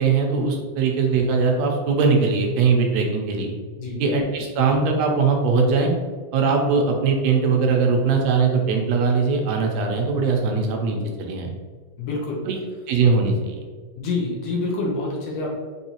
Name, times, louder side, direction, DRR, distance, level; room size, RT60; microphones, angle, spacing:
voice 1, 0.0-3.6 4.0-5.9 6.3-11.5 12.5-12.6 12.9-13.6, right 4 dB, 75° right, 1 dB, 1.8 m, -20 dB
voice 2, 12.0-12.4 14.0-15.5, left 3 dB, 65° left, -3 dB, 1.9 m, -27 dB
5.5 x 3.2 x 2.9 m, 1.5 s
omnidirectional pair, 3.4 m